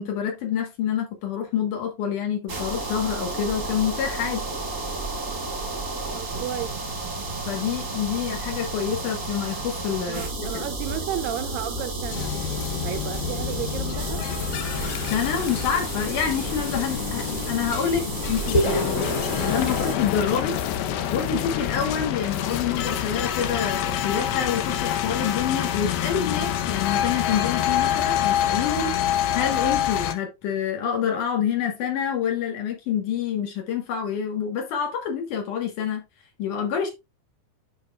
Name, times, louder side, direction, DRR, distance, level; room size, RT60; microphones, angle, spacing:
voice 1, 0.0-4.4 7.5-10.6 15.1-20.5 21.1-28.9 29.3-36.0 36.4-36.9, left 8 dB, 65° left, 2.7 m, -27 dB
sound 1, 2.5-20.0, right 3 dB, 35° right, 1.3 m, -32 dB
voice 2, 6.1-6.8 10.1-12.3 12.8-14.2, right 11 dB, 80° right, 2.2 m, -33 dB
sound 2, 12.1-30.1, left 10 dB, 85° left, 2.7 m, -27 dB
sound 3, 18.5-22.9, equal, 25° left, 2.1 m, -30 dB
9.4 x 5.7 x 2.4 m
omnidirectional pair, 4.3 m